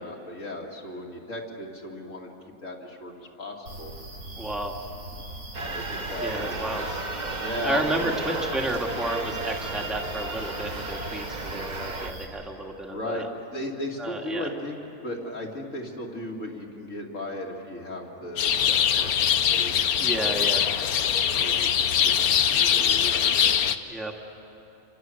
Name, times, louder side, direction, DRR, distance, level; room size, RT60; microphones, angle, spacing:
voice 1, 0.0-2.3 2.6-3.9 5.6-6.7 7.4-8.2 9.2-9.4 12.9-14.8 15.0-20.4 21.3-23.5 23.8-24.0, left 1 dB, 60° left, 0 dB, 3.0 m, -36 dB
sound 1, 3.7-12.2, right 1 dB, 65° right, 8.2 m, -41 dB
voice 2, 4.4-4.7 6.2-6.8 7.6-13.3 14.0-14.5 20.0-20.6 23.9-24.1, right 1 dB, ahead, 1 dB, 2.1 m, -31 dB
sound 2, 5.5-12.1, right 2 dB, 30° right, 1.4 m, -33 dB
sound 3, 18.4-23.8, left 9 dB, 90° left, 1.3 m, -22 dB
28.5 x 26.5 x 7.9 m, 3.0 s
omnidirectional pair, 1.5 m